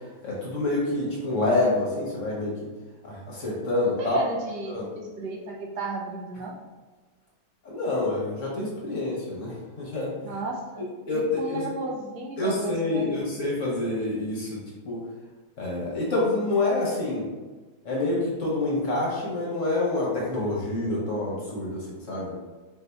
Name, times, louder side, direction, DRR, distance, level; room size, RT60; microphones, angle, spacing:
voice 1, 0.2-2.5 3.0-4.2 4.6-4.9 7.6-10.1 11.1-11.2 11.5-11.7 12.4-15.0 15.6-17.3 17.8-22.3, left 2 dB, 50° left, -5 dB, 1.2 m, -27 dB
voice 2, 3.9-6.5 10.2-10.9 11.1-13.2, right 2 dB, 70° right, -1 dB, 1.2 m, -34 dB
4.4 x 2.7 x 3.4 m, 1.3 s
omnidirectional pair, 1.9 m